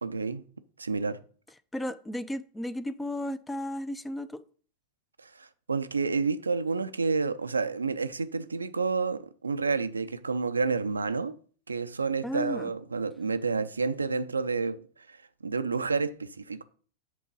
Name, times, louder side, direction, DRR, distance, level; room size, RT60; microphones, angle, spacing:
voice 1, 0.0-0.5 0.8-1.2 5.2-11.4 11.7-16.6, right 4 dB, 85° right, 0.5 m, -30 dB
voice 2, 1.7-4.4 12.2-12.7, left 1 dB, 10° left, 0.5 m, -34 dB
7.5 x 3.8 x 5.4 m
figure-of-eight pair, 90°, 0 cm